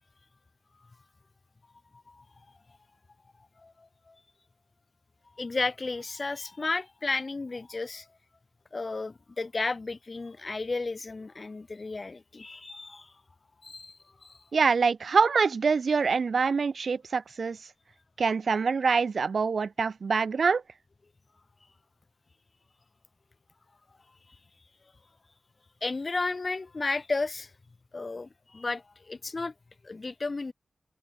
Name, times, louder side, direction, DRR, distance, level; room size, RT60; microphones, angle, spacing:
voice 1, 3.6-4.2 5.4-8.1 8.7-13.1 13.6-14.4 25.8-27.5 27.9-29.5 29.8-30.5, left 3 dB, 50° left, 1.3 m, -33 dB
voice 2, 14.5-17.6 18.2-20.6, right 5 dB, 80° right, 0.3 m, -25 dB
cardioid pair, 55°, 0 cm